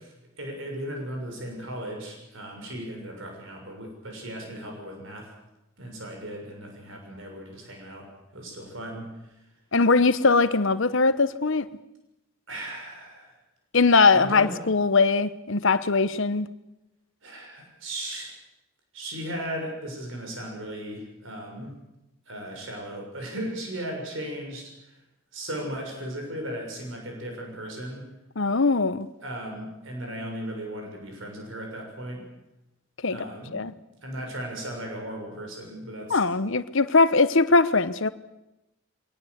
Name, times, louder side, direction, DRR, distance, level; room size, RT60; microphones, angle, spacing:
voice 1, 0.0-5.3 5.8-8.1 8.3-9.1 12.5-13.3 14.1-14.5 17.2-18.3 18.9-21.7 22.3-24.9 25.3-28.0 29.2-32.2 33.1-33.6 34.0-36.2, right 1 dB, 60° right, 2 dB, 6.6 m, -36 dB
voice 2, 9.7-11.7 13.7-16.5 28.4-29.1 33.0-33.3 33.5-33.7 36.1-38.1, left 4 dB, 60° left, 14 dB, 1.0 m, -21 dB
22.5 x 18.5 x 8.1 m, 0.93 s
head